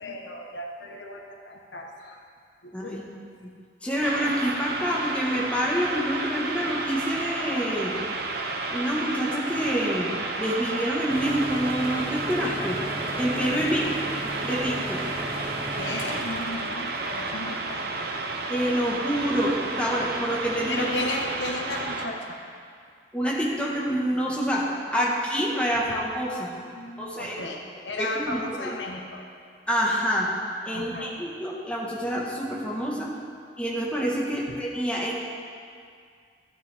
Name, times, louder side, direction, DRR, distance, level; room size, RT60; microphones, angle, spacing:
voice 1, 0.0-2.2 2.6-3.1 8.8-8.9 13.6-13.7 15.7-18.1 20.7-22.4 25.0-25.2 25.9-26.0 26.6-29.2 30.7-31.1 34.5-34.6, left 2 dB, 90° left, 2 dB, 1.1 m, -35 dB
voice 2, 3.8-7.9 8.7-10.1 10.4-12.8 13.2-14.0 14.4-15.0 18.5-20.9 23.1-26.5 27.0-27.4 28.0-28.7 29.7-30.3 30.6-33.1 33.6-35.2, equal, 5° left, -4 dB, 1.4 m, -27 dB
sound 1, 4.0-22.1, right 3 dB, 60° right, 0.9 m, -32 dB
sound 2, 11.1-18.0, right 1 dB, 35° right, 1.0 m, -36 dB
13.0 x 9.7 x 3.5 m, 2.2 s
head